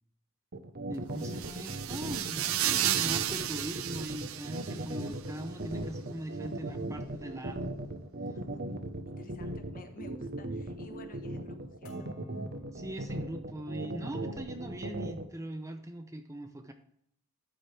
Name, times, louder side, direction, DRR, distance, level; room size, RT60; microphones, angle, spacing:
sound 1, 0.5-15.2, right 1 dB, 45° right, 0.9 m, -38 dB
voice 1, 0.9-7.6 12.7-16.7, right 1 dB, 15° right, 7 dB, 0.6 m, -41 dB
sound 2, 1.2-5.1, right 11 dB, 65° right, 0.6 m, -33 dB
voice 2, 8.3-8.7 9.1-12.1, left 1 dB, 40° left, 6 dB, 1.1 m, -52 dB
sound 3, 8.7-8.9 9.6-10.0 10.3-10.8 11.2-11.5 11.8-13.2 13.8-14.0 14.4-14.7, left 1 dB, 65° left, 4.1 m, -62 dB
13.0 x 7.3 x 3.4 m, 0.70 s
head